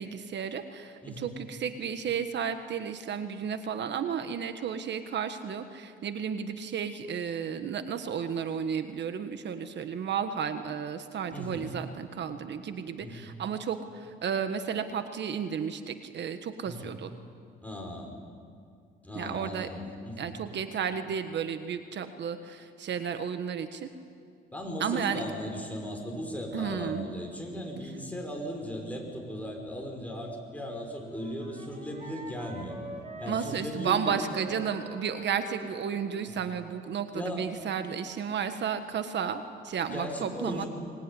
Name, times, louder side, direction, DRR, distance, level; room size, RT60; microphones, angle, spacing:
voice 1, 0.0-17.1 19.1-19.7 20.2-23.9 24.8-25.2 26.5-27.1 33.3-40.6, right 7 dB, 60° right, 9 dB, 1.5 m, -33 dB
voice 2, 1.0-1.3 11.3-11.8 13.0-13.3 16.6-17.0 17.6-18.1 19.0-20.3 24.5-32.8 33.2-34.2 37.1-37.5 39.9-40.7, equal, 5° left, 1 dB, 5.9 m, -37 dB
Wind instrument woodwind instrument, 31.0-36.3, right 2 dB, 35° right, 4.5 m, -44 dB
24.5 x 20.0 x 10.0 m, 2.4 s
cardioid pair, 90°, 20 cm